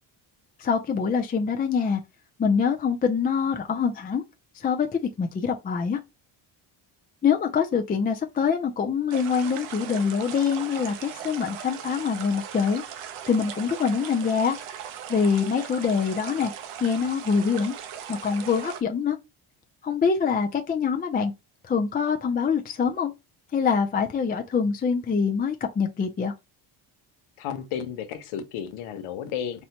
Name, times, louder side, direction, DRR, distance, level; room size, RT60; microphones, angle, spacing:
voice 1, 0.6-2.0 2.4-4.2 4.5-6.0 7.2-12.8 13.3-14.6 15.1-16.5 16.8-17.7 18.1-19.2 19.8-21.3 21.6-23.1 23.5-26.3, left 6 dB, 20° left, 0.3 m, -24 dB
sound 1, 9.1-18.8, right 9 dB, 80° right, 0.8 m, -39 dB
voice 2, 27.4-29.6, left 8 dB, 85° left, 0.8 m, -33 dB
4.2 x 2.1 x 2.8 m
cardioid pair, 100°, 49 cm